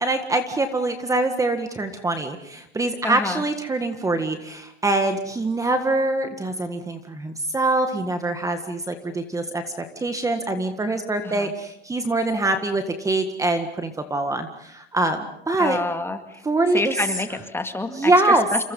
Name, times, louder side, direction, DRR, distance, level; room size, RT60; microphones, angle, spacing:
voice 1, 0.0-9.6 10.0-15.8 16.4-17.0 17.9-18.5, right 2 dB, 10° right, 7 dB, 1.7 m, -24 dB
voice 2, 3.0-3.4 11.2-11.5 15.6-16.4 16.7-18.1 18.5-18.6, left 2 dB, 5° left, 7 dB, 2.0 m, -28 dB
29.0 x 26.0 x 5.5 m, 0.79 s
supercardioid pair, 130°, 32 cm